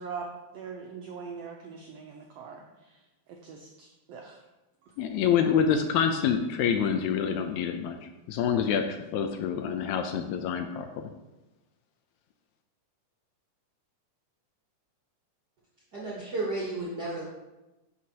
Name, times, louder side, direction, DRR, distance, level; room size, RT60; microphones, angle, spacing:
voice 1, 0.0-4.4 4.8-5.0 5.4-5.5, right 5 dB, 90° right, 1 dB, 1.4 m, -42 dB
voice 2, 5.0-8.0 8.3-11.1, left 7 dB, 80° left, 6 dB, 1.8 m, -27 dB
voice 3, 15.9-17.2, right 2 dB, 65° right, -5 dB, 1.0 m, -33 dB
10.5 x 4.6 x 2.8 m, 1.0 s
omnidirectional pair, 3.6 m